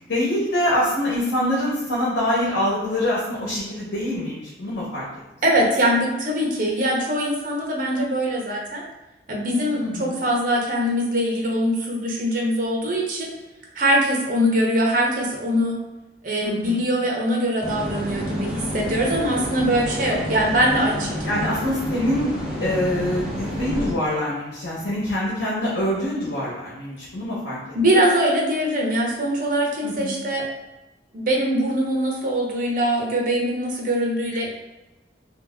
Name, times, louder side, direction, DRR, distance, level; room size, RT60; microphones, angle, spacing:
voice 1, 0.1-5.0 9.7-10.2 16.4-16.8 21.2-27.6 27.9-28.0 29.8-30.2, left 1 dB, 90° left, -7 dB, 1.2 m, -25 dB
voice 2, 5.4-8.8 9.3-13.3 13.7-15.8 16.2-21.4 27.7-30.5 31.1-34.5, equal, 50° right, -1 dB, 0.9 m, -22 dB
sound 1, 17.6-23.9, equal, 5° right, 0.9 m, -29 dB
3.4 x 2.8 x 3.6 m, 1.0 s
head